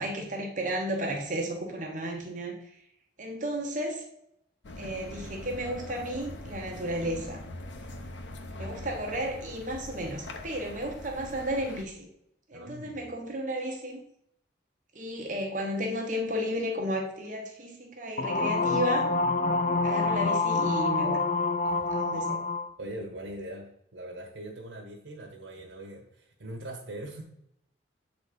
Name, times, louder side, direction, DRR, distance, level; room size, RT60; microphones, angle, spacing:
voice 1, 0.0-2.6 3.2-4.0 4.8-7.4 8.5-12.1 12.5-14.0 14.9-19.1 19.8-21.2 21.9-22.4, equal, 40° right, 1 dB, 1.0 m, -33 dB
sound 1, 4.6-11.8, left 2 dB, 75° left, 0.8 m, -42 dB
voice 2, 12.5-13.0 21.6-22.3 22.8-27.2, right 1 dB, 80° right, -1 dB, 1.1 m, -42 dB
sound 2, 18.2-22.7, left 3 dB, 40° left, 0.4 m, -27 dB
7.5 x 4.2 x 5.0 m, 0.75 s
head